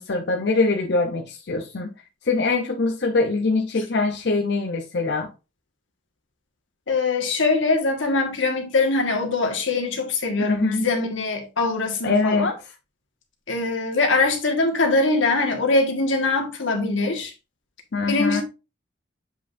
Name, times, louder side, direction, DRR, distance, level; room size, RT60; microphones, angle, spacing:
voice 1, 0.0-1.9 2.3-5.3 10.4-10.9 12.0-12.5 17.9-18.4, left 3 dB, 60° left, 0.7 m, -23 dB
voice 2, 6.9-12.5 13.5-17.3 18.1-18.4, left 3 dB, 90° left, 1.7 m, -22 dB
7.7 x 5.1 x 2.6 m
head